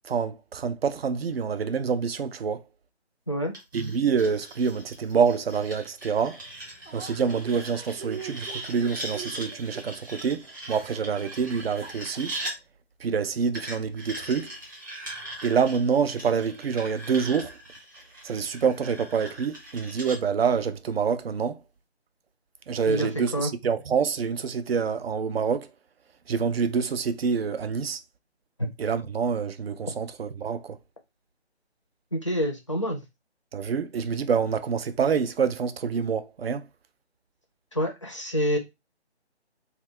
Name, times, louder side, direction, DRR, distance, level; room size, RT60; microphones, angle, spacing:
voice 1, 0.1-2.6 3.7-6.4 6.9-10.4 10.7-12.4 13.0-14.5 15.4-17.5 18.2-21.6 22.7-25.7 26.3-28.0 28.8-30.8 33.5-36.7, right 6 dB, 60° right, 0.5 m, -26 dB
sound 1, 3.5-12.6 13.5-20.2, right 1 dB, 20° right, 0.8 m, -40 dB
sound 2, 6.9-12.5, right 5 dB, 90° right, 0.8 m, -43 dB
voice 2, 22.9-23.5 28.6-28.7 32.1-33.0 37.7-38.6, equal, 30° left, 0.5 m, -27 dB
2.3 x 2.3 x 3.5 m
figure-of-eight pair, 165°, 34 cm